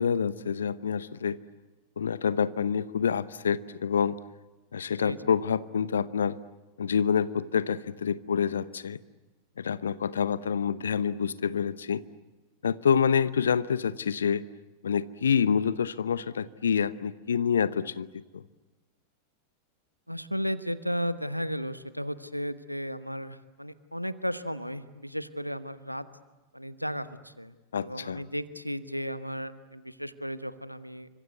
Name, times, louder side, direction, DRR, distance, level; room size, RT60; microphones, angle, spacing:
voice 1, 0.0-1.4 2.0-4.2 4.7-6.4 6.8-9.0 9.6-12.0 12.6-14.4 14.8-18.1 18.3-18.4 27.7-28.2, left 7 dB, 70° left, 17 dB, 0.9 m, -27 dB
voice 2, 5.0-5.4 20.1-26.1 26.5-31.1, equal, 90° right, 14 dB, 1.1 m, -34 dB
29.0 x 25.0 x 8.2 m, 1.2 s
figure-of-eight pair, 90°, 0 cm